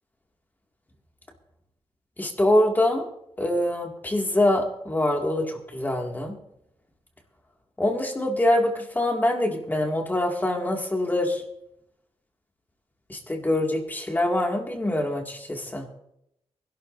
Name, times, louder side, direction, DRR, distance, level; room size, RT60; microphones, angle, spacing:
voice 1, 2.2-3.1 3.4-6.4 7.8-11.4 13.1-15.9, left 1 dB, 20° left, 2 dB, 2.0 m, -24 dB
24.0 x 12.0 x 2.6 m, 0.80 s
cardioid pair, 95°, 10 cm